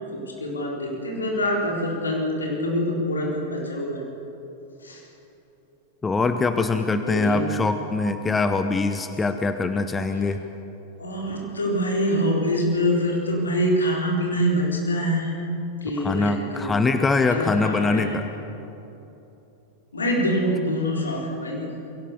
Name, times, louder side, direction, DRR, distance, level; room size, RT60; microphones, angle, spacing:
voice 1, 0.1-4.0 4.8-5.0 7.1-7.5 11.0-15.3 15.8-16.8 17.3-18.1 19.9-21.7, equal, 75° left, -1 dB, 4.1 m, -25 dB
voice 2, 6.0-10.4 16.0-18.3, left 3 dB, 15° left, 9 dB, 0.9 m, -23 dB
23.0 x 17.5 x 7.0 m, 3.0 s
figure-of-eight pair, 90°, 0 cm